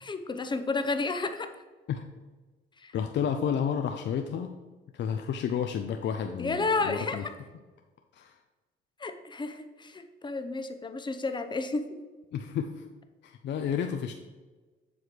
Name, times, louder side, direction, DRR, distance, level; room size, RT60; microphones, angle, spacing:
voice 1, 0.0-1.5 2.8-2.9 6.4-7.3 9.0-12.0, left 3 dB, 25° left, 8 dB, 0.7 m, -31 dB
voice 2, 2.9-4.5 4.9-7.2 8.1-8.3 12.3-12.8 13.2-14.1, left 8 dB, 65° left, 5 dB, 0.5 m, -31 dB
7.3 x 3.2 x 6.0 m, 1.3 s
cardioid pair, 90°, 20 cm